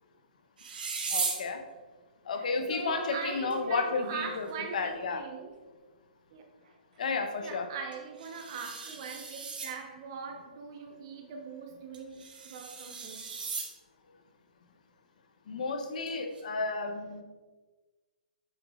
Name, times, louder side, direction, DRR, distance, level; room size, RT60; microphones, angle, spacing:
sound 1, 0.6-1.5 3.5-3.6 3.8-3.9 4.5-4.6 7.9-9.8 11.9-13.7 16.1-16.4, right 5 dB, 65° right, 1.7 m, -37 dB
voice 1, 1.1-1.6 2.3-4.5 4.7-5.2 7.0-7.7 15.5-17.2, left 4 dB, 50° left, 7 dB, 1.0 m, -32 dB
voice 2, 2.3-5.5 6.3-6.5 7.4-13.3, right 5 dB, 30° right, 5 dB, 0.8 m, -41 dB
8.8 x 6.4 x 3.7 m, 1.3 s
hypercardioid pair, 175°, 5 cm